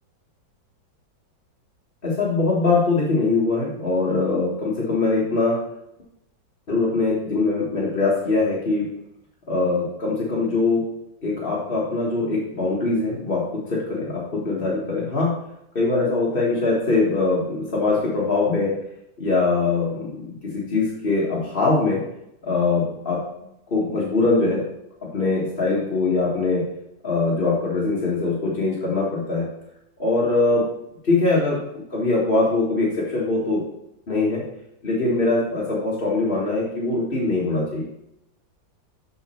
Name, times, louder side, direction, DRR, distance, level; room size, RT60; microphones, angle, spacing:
voice 1, 2.0-5.6 6.7-8.9 9.5-10.8 11.2-15.3 15.7-18.7 19.2-22.0 22.4-23.2 23.7-24.6 25.1-26.6 27.0-29.5 30.0-30.6 31.0-33.6 34.1-34.4 34.8-37.8, left 3 dB, 30° left, -6 dB, 1.5 m, -22 dB
12.5 x 4.2 x 4.3 m, 0.82 s
omnidirectional pair, 2.0 m